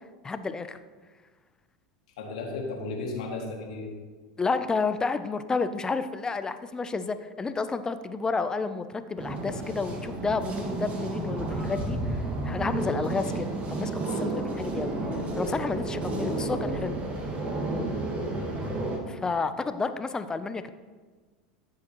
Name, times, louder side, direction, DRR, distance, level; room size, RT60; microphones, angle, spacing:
voice 1, 0.2-0.8 4.4-12.0 12.4-14.9 15.4-17.0 19.1-20.7, left 4 dB, 20° left, 11 dB, 0.6 m, -30 dB
voice 2, 2.2-3.9 18.3-18.6, left 3 dB, 75° left, 0 dB, 2.2 m, -35 dB
sound 1, 9.2-19.0, right 2 dB, 35° right, 2.0 m, -31 dB
13.5 x 7.5 x 3.1 m, 1.4 s
hypercardioid pair, 90°, 4 cm